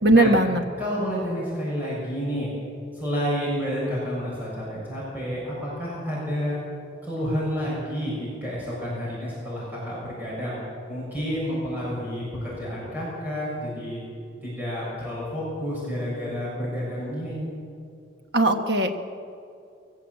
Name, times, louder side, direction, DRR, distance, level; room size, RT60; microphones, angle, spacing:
voice 1, 0.0-0.6 18.3-19.0, right 1 dB, 60° right, 5 dB, 1.4 m, -19 dB
voice 2, 0.8-2.5 2.9-6.6 7.0-10.6 10.9-14.0 14.4-17.5, equal, 10° right, -7 dB, 6.7 m, -30 dB
22.0 x 15.5 x 8.3 m, 2.5 s
head